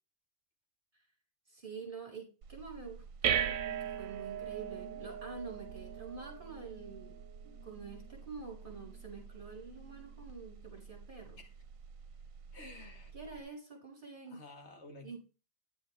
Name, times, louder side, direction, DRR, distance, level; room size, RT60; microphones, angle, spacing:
voice 1, 1.5-7.1 7.4-11.4 13.1-14.4 15.0-15.2, right 4 dB, 40° right, -1 dB, 4.0 m, -47 dB
sound 1, 2.4-13.4, right 8 dB, 80° right, 1.1 m, -41 dB
voice 2, 12.5-13.1 14.3-15.2, left 2 dB, 55° left, 3 dB, 2.1 m, -51 dB
10.5 x 7.8 x 3.5 m, 0.33 s
omnidirectional pair, 1.4 m